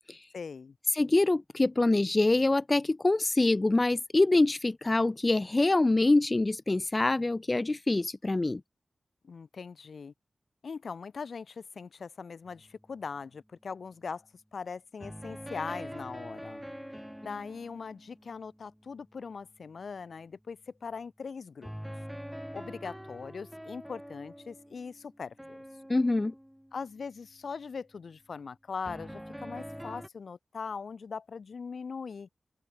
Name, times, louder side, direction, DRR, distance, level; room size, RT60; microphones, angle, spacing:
voice 1, 0.3-0.8 9.2-10.1 10.6-14.3 14.5-16.6 17.2-21.7 22.5-25.6 26.7-32.3, left 5 dB, 80° left, 4.6 m, -40 dB
voice 2, 0.9-8.6 25.9-26.3, left 2 dB, 30° left, 1.8 m, -25 dB
sound 1, 12.5-12.8 15.0-19.1 21.6-27.2 28.8-30.1, equal, ahead, 2.3 m, -44 dB
open air
wide cardioid pair, 110°, 0 cm